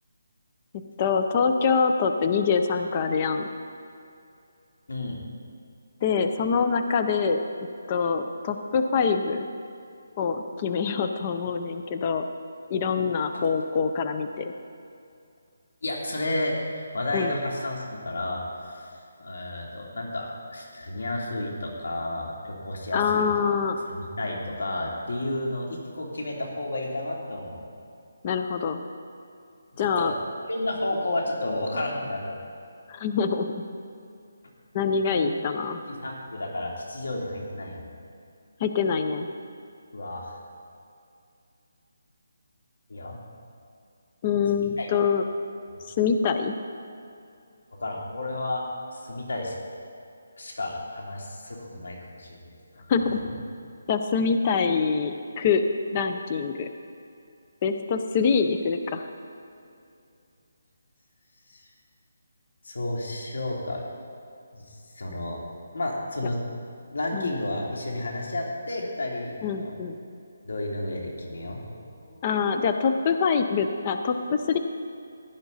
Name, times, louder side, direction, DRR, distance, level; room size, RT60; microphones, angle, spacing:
voice 1, 1.0-3.5 6.0-7.4 7.9-9.5 10.2-12.2 12.7-14.5 17.1-17.3 22.9-23.8 28.2-28.8 29.8-30.1 32.9-33.6 34.7-35.8 38.6-39.3 44.2-45.2 45.9-46.5 52.9-53.2 53.9-55.6 55.9-56.7 57.6-59.0 67.1-67.3 69.4-70.0 72.2-74.6, left 5 dB, 20° left, 7 dB, 0.5 m, -25 dB
voice 2, 15.8-18.9 19.2-23.3 23.9-27.6 29.7-30.1 30.5-32.3 35.1-35.4 35.9-37.9 39.9-40.4 42.9-43.2 44.6-44.9 47.8-48.6 48.9-49.5 50.4-52.4 52.7-53.3 61.5-61.6 62.6-63.8 64.5-65.4 65.7-66.4 66.9-69.7 70.4-72.3, left 1 dB, 85° left, -1 dB, 3.0 m, -32 dB
16.0 x 10.5 x 4.0 m, 2.5 s
hypercardioid pair, 175°, 0 cm